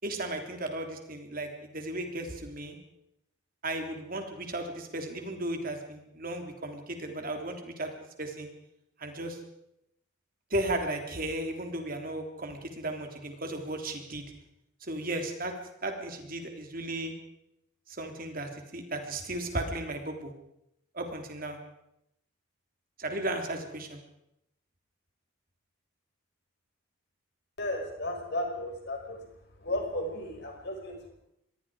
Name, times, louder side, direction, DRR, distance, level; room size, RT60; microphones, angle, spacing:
voice 1, 0.0-2.8 3.6-7.9 8.2-8.5 9.0-9.4 10.5-14.3 14.8-15.5 15.8-17.1 17.9-20.3 20.9-21.6 23.0-24.0, right 1 dB, 40° right, 4 dB, 3.3 m, -35 dB
voice 2, 27.6-29.2 29.6-31.1, left 1 dB, 50° left, 2 dB, 5.6 m, -34 dB
26.0 x 21.0 x 4.9 m, 0.80 s
head